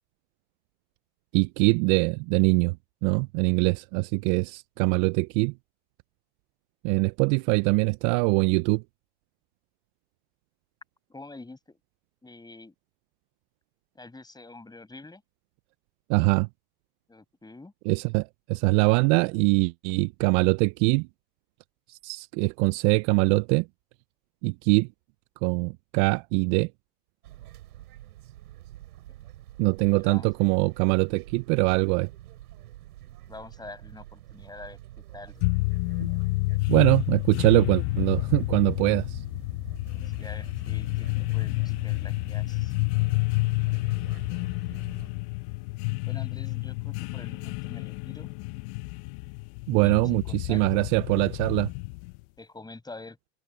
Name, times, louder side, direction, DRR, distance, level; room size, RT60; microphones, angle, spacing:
voice 1, 1.3-2.8 3.0-5.5 6.8-8.8 16.1-16.5 17.9-21.1 21.9-23.7 24.4-24.9 25.4-26.7 29.6-32.1 36.0-36.1 36.7-39.2 49.7-51.7, right 29 dB, 50° right, 0.7 m, -23 dB
voice 2, 11.1-11.8 12.2-12.7 13.9-15.2 17.1-17.7 29.9-30.3 33.3-34.8 35.1-35.4 40.2-42.7 46.0-48.3 49.8-50.9 52.4-53.2, left 2 dB, 10° left, 6.2 m, -46 dB
sound 1, 27.2-45.1, right 14 dB, 75° right, 7.9 m, -47 dB
sound 2, 35.4-52.2, left 25 dB, 50° left, 0.9 m, -29 dB
hypercardioid pair, 105°, 46 cm